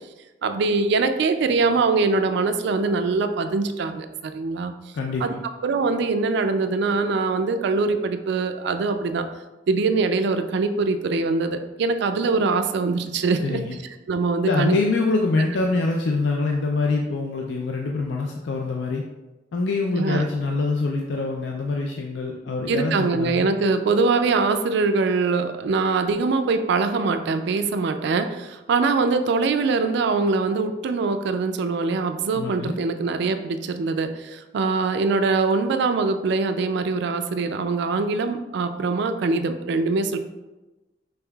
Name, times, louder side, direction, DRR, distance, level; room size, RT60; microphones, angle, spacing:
voice 1, 0.4-4.7 5.2-5.3 5.6-9.3 9.7-13.6 14.1-14.7 20.0-20.2 22.7-40.2, right 4 dB, 65° right, 8 dB, 0.3 m, -23 dB
voice 2, 4.9-5.3 13.4-13.8 14.4-19.0 19.5-23.5 32.3-32.8, left 3 dB, 65° left, 1 dB, 0.4 m, -25 dB
5.4 x 3.4 x 2.3 m, 1.1 s
head